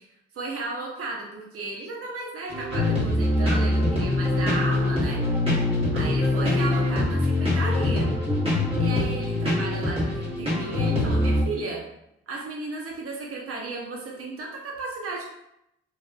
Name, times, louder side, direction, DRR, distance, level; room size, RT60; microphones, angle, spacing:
voice 1, 0.3-5.2 5.9-8.1 8.8-11.8 12.3-15.3, right 3 dB, 45° right, -2 dB, 0.7 m, -34 dB
sound 1, 2.5-11.4, left 2 dB, 20° right, 1.3 m, -23 dB
2.6 x 2.3 x 2.4 m, 0.82 s
supercardioid pair, 50°, 31 cm